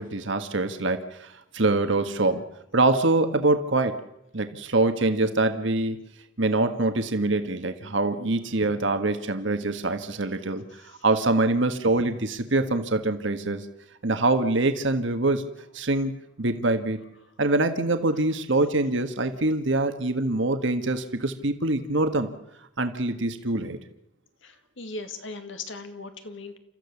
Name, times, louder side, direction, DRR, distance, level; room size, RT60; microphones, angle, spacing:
voice 1, 0.0-2.4 2.7-4.0 4.3-6.0 6.4-10.6 11.0-13.6 14.0-15.4 15.7-16.1 16.4-17.0 17.4-22.3 22.8-23.8, right 2 dB, 60° right, 8 dB, 1.6 m, -24 dB
voice 2, 24.4-26.6, left 3 dB, 65° left, 7 dB, 2.2 m, -38 dB
29.5 x 14.0 x 7.2 m, 0.82 s
head